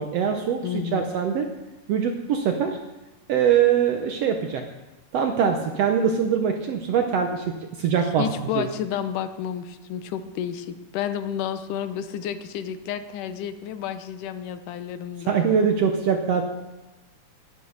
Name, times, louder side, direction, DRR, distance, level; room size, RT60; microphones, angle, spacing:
voice 1, 0.0-1.5 1.9-2.8 3.3-4.6 5.1-8.2 8.5-8.7 15.3-16.4, right 7 dB, 70° right, 5 dB, 1.6 m, -23 dB
voice 2, 0.6-1.2 8.2-15.4, left 9 dB, 85° left, 10 dB, 2.4 m, -31 dB
11.0 x 10.0 x 6.4 m, 1.1 s
omnidirectional pair, 3.6 m